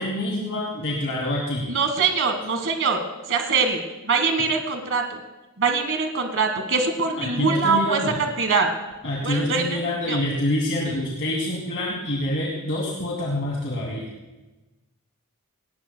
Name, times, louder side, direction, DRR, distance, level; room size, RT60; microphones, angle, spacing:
voice 1, 0.0-1.7 7.2-8.2 9.0-14.1, left 1 dB, 60° left, -4 dB, 2.6 m, -26 dB
voice 2, 1.7-3.0 3.3-5.2 5.6-8.0 8.4-8.7 9.2-9.8 10.1-10.2, right 4 dB, 60° right, 5 dB, 1.6 m, -23 dB
19.0 x 18.0 x 2.2 m, 1.1 s
head